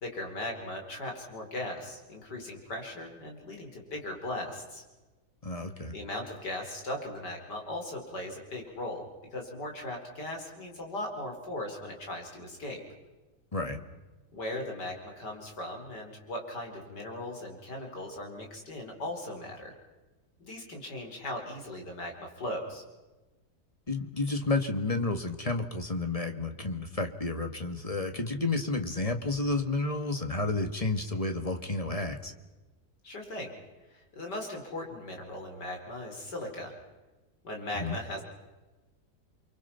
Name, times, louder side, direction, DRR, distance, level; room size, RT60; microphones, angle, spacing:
voice 1, 0.0-4.8 5.9-12.8 14.3-19.7 20.4-22.8 33.0-33.5 33.9-36.7 37.4-38.2, left 1 dB, 90° left, 2 dB, 5.2 m, -38 dB
voice 2, 5.4-5.9 13.5-13.8 23.9-32.3 37.8-38.0, left 2 dB, 20° left, 7 dB, 1.8 m, -31 dB
29.5 x 24.5 x 5.8 m, 1.2 s
omnidirectional pair, 1.8 m